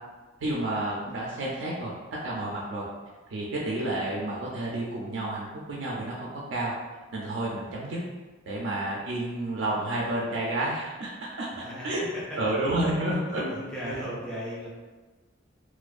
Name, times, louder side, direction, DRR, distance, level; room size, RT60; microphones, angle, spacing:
voice 1, 0.4-1.9 2.2-2.8 3.3-6.7 7.1-8.0 8.5-11.5 11.8-13.5 13.8-14.0, right 1 dB, 70° right, -4 dB, 0.4 m, -30 dB
voice 2, 11.5-12.4 13.4-14.7, equal, 5° left, -8 dB, 0.5 m, -37 dB
2.5 x 2.1 x 2.3 m, 1.3 s
head